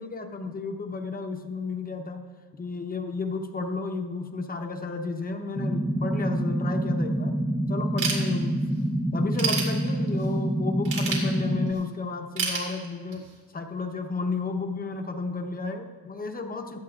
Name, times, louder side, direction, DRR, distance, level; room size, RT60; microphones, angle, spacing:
voice 1, 0.0-2.2 2.6-7.4 7.7-8.6 9.1-13.2 13.5-16.8, left 3 dB, 25° left, 4 dB, 0.8 m, -32 dB
sound 1, 5.6-11.7, right 1 dB, 5° right, 0.4 m, -27 dB
Ratchet pawl / Tools, 8.0-8.8 9.2-10.3 10.9-11.8 12.4-13.3, right 5 dB, 85° right, 3.1 m, -29 dB
16.5 x 12.5 x 2.4 m, 1.5 s
cardioid pair, 145°, 37 cm